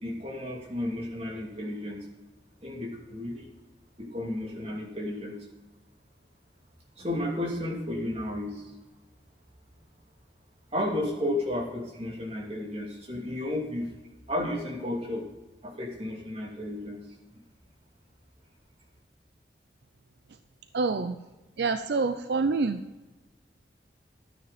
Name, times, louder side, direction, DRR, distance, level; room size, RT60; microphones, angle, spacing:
voice 1, 0.0-2.0 2.6-3.5 4.0-5.4 7.0-8.7 10.7-13.9 14.3-15.3 15.6-17.0, left 1 dB, 35° right, -2 dB, 2.6 m, -33 dB
voice 2, 20.7-21.2 21.6-22.8, right 4 dB, 70° right, 10 dB, 0.5 m, -26 dB
12.5 x 9.3 x 4.1 m, 1.1 s
head